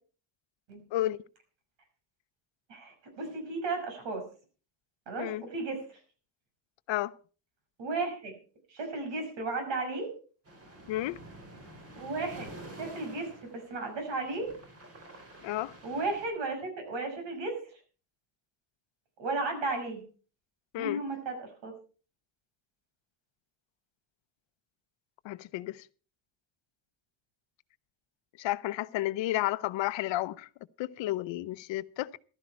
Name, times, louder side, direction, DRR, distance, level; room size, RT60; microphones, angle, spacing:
voice 1, 0.9-1.2 5.2-5.4 6.9-7.2 10.9-11.2 15.4-15.7 20.7-21.0 25.2-25.9 28.4-30.5 30.8-32.2, left 15 dB, 75° left, 0.8 m, -32 dB
voice 2, 2.7-4.2 5.1-5.8 7.8-8.3 8.7-10.1 12.0-14.5 15.8-17.6 19.2-20.0 20.8-21.7, right 3 dB, 75° right, 6.0 m, -34 dB
sound 1, 10.5-16.3, right 1 dB, 30° right, 4.1 m, -49 dB
15.0 x 12.5 x 4.4 m
cardioid pair, 170°, 45 cm